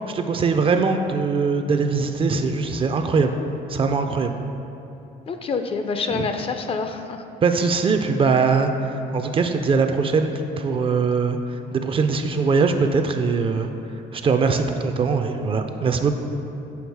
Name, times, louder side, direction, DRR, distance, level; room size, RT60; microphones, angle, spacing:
voice 1, 0.1-3.3 3.7-4.3 6.1-6.3 7.4-8.7 9.1-13.7 14.1-16.1, right 4 dB, 30° right, 6 dB, 0.4 m, -21 dB
voice 2, 5.3-7.2, left 4 dB, 35° left, 7 dB, 0.4 m, -27 dB
7.0 x 3.9 x 4.7 m, 2.9 s
cardioid pair, 110°, 17 cm